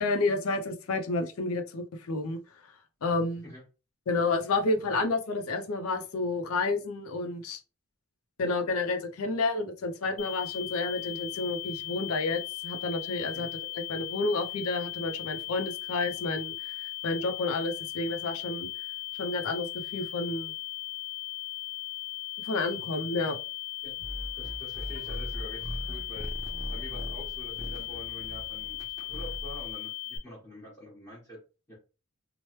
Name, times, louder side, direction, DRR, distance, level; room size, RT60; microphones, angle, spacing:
voice 1, 0.0-2.4 3.0-3.4 4.1-7.6 8.4-13.5 13.7-16.7 17.0-18.7 19.1-20.5 22.4-23.4, left 3 dB, 85° left, 6 dB, 0.5 m, -30 dB
sound 1, 10.2-30.2, left 18 dB, 35° left, 0.4 m, -38 dB
sound 2, 24.0-29.7, equal, 15° right, 0.6 m, -39 dB
voice 2, 24.4-26.3 26.7-28.8 29.1-31.4 31.7-31.8, left 1 dB, 15° left, -8 dB, 1.2 m, -46 dB
3.1 x 2.0 x 3.0 m, 0.32 s
head